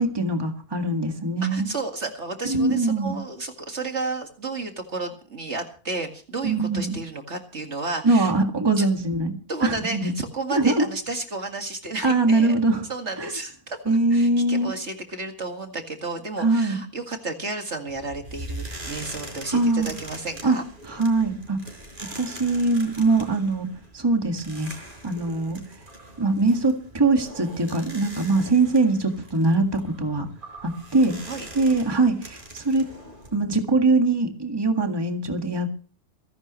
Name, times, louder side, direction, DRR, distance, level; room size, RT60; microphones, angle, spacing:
voice 1, 0.0-1.7 2.5-3.2 6.4-7.0 8.0-9.3 9.6-10.1 10.5-10.9 12.0-12.8 13.2-13.3 13.9-14.7 16.4-16.8 19.5-19.9 20.4-20.6 20.9-21.6 22.2-23.7 23.9-24.7 25.0-25.6 26.2-30.3 30.6-31.1 31.6-32.9 33.3-35.7, right 2 dB, 15° right, 4 dB, 1.9 m, -22 dB
voice 2, 1.4-8.3 8.8-8.9 9.5-12.6 12.9-20.6 31.3-31.5, right 3 dB, 50° right, 4 dB, 2.2 m, -32 dB
sound 1, 17.9-33.4, right 1 dB, 35° right, 4.9 m, -42 dB
28.0 x 11.5 x 3.1 m, 0.40 s
omnidirectional pair, 1.6 m